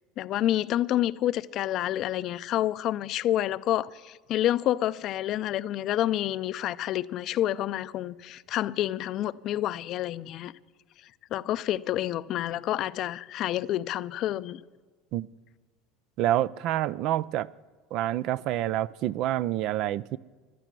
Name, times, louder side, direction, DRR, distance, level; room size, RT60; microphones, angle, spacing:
voice 1, 0.2-10.5 11.3-14.6, left 13 dB, 55° left, 0.5 m, -28 dB
voice 2, 16.2-17.5 17.9-20.2, right 13 dB, 60° right, 0.4 m, -27 dB
16.0 x 12.0 x 6.2 m
supercardioid pair, 90°, 0 cm